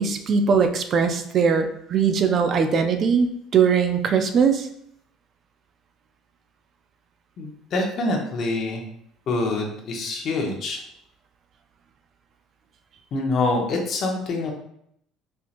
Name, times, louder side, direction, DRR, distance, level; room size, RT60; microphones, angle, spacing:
voice 1, 0.0-4.7, right 6 dB, 45° right, 6 dB, 0.4 m, -20 dB
voice 2, 7.4-8.8 9.3-10.8 13.1-14.5, left 2 dB, 50° left, 1 dB, 0.9 m, -25 dB
4.4 x 2.8 x 2.5 m, 0.73 s
cardioid pair, 105°, 0 cm